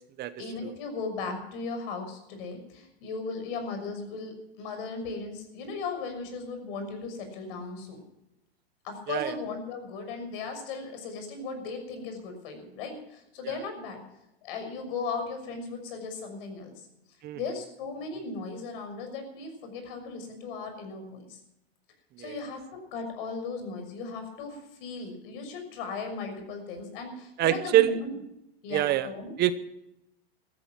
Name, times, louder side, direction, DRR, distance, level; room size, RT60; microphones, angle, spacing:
voice 1, 0.4-8.0 8.8-14.0 14.4-16.7 17.3-21.4 22.2-28.2 28.6-29.3, left 4 dB, 60° left, 6 dB, 6.3 m, -37 dB
voice 2, 27.4-28.0 28.7-29.1 29.4-29.5, right 13 dB, 30° right, 13 dB, 0.9 m, -25 dB
15.0 x 15.0 x 5.9 m, 0.85 s
supercardioid pair, 135°, 31 cm